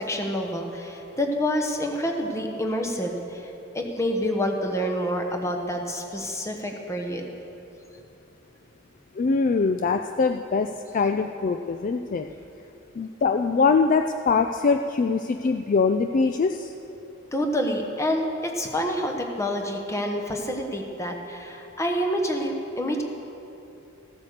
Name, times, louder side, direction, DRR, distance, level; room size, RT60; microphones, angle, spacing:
voice 1, 0.0-3.4 3.7-7.2 17.3-23.0, equal, 15° left, 2 dB, 1.1 m, -27 dB
voice 2, 9.2-12.3 13.0-16.7, left 4 dB, 40° left, 6 dB, 0.3 m, -23 dB
15.0 x 8.3 x 6.6 m, 2.9 s
head